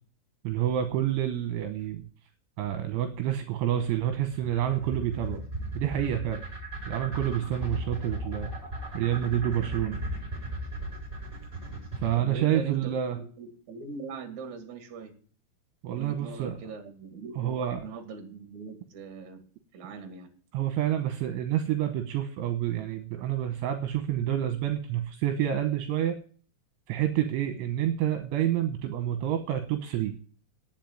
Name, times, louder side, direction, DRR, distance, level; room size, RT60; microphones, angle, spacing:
voice 1, 0.4-2.0 2.6-5.4 5.8-6.4 6.9-8.5 8.9-10.0 12.0-13.2 15.8-16.6 17.4-17.8 20.5-26.2 26.9-30.1, right 11 dB, 75° right, 8 dB, 3.1 m, -28 dB
sound 1, 3.9-12.1, right 2 dB, 10° right, 7.7 m, -36 dB
voice 2, 12.1-15.1 15.9-19.4 19.7-20.3, right 4 dB, 45° right, 6 dB, 2.7 m, -41 dB
9.9 x 7.4 x 9.1 m, 0.43 s
omnidirectional pair, 5.9 m